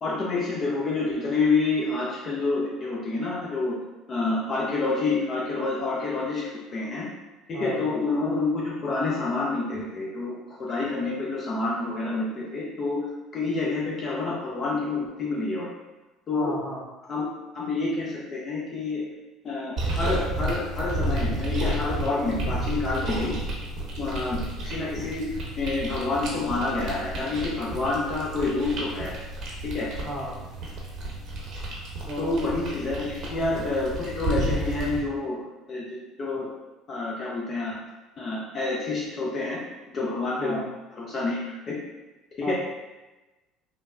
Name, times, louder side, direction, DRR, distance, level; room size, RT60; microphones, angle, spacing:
voice 1, 0.0-3.8 4.1-7.1 7.5-13.0 13.3-15.7 16.3-16.6 17.1-17.2 17.5-19.0 19.4-23.3 24.0-25.3 25.6-29.1 29.6-29.9 32.2-35.4 35.7-36.5 36.9-37.7 38.2-39.6 39.9-40.6 41.0-41.4 41.7-41.8 42.4-42.5, left 3 dB, 45° left, -5 dB, 0.6 m, -28 dB
voice 2, 7.5-7.9 16.3-16.8 30.0-30.4 32.1-32.4 40.4-40.7 42.4-42.5, equal, 5° left, -5 dB, 0.9 m, -34 dB
sound 1, 19.8-35.0, right 1 dB, 55° right, 0.7 m, -32 dB
3.2 x 2.0 x 2.4 m, 1.1 s
hypercardioid pair, 65°, 0 cm